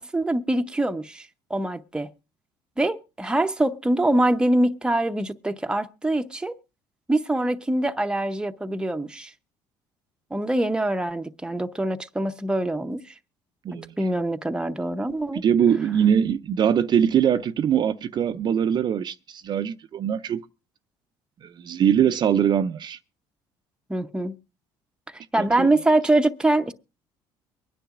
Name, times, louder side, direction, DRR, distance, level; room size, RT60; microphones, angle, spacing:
voice 1, 0.0-2.1 2.8-6.6 7.1-9.3 10.3-13.2 13.7-15.4 23.9-24.4 25.1-26.7, right 1 dB, 10° right, 0.7 m, -24 dB
voice 2, 13.6-14.0 15.3-20.4 21.4-23.0 25.4-25.7, right 8 dB, 45° right, 0.5 m, -22 dB
24.0 x 10.0 x 2.4 m
cardioid pair, 95°, 10 cm